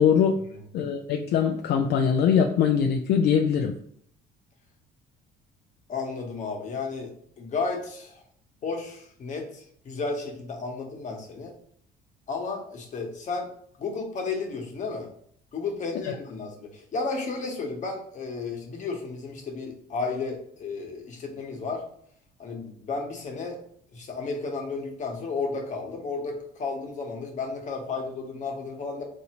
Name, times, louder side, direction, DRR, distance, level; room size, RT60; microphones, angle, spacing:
voice 1, 0.0-0.4 0.7-3.7 16.0-16.1, left 7 dB, 70° left, 3 dB, 0.4 m, -22 dB
voice 2, 5.9-8.2 8.6-11.5 12.3-13.5 13.8-15.1 15.5-21.8 22.4-23.6 23.9-29.0, left 4 dB, 45° left, 2 dB, 1.1 m, -33 dB
4.1 x 2.7 x 2.8 m, 0.65 s
cardioid pair, 110°, 17 cm